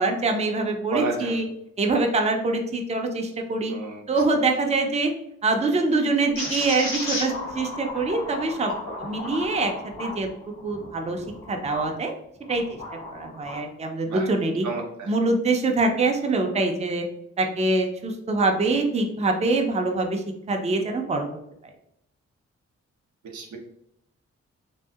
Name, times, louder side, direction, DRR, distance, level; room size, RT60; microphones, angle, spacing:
voice 1, 0.0-1.5 1.8-3.7 4.1-5.1 5.4-8.7 9.0-9.7 10.0-10.3 10.6-12.1 12.5-12.6 13.1-14.7 15.1-17.0 17.4-21.3, right 3 dB, 25° right, 3 dB, 0.5 m, -24 dB
voice 2, 0.9-1.4 3.7-4.0 14.1-14.3 14.6-15.1 23.3-23.6, right 3 dB, 80° right, 2 dB, 0.6 m, -30 dB
sound 1, 6.4-11.9 12.4-13.6, left 2 dB, 85° left, 1.1 m, -34 dB
2.7 x 2.4 x 2.3 m, 0.77 s
cardioid pair, 55°, 29 cm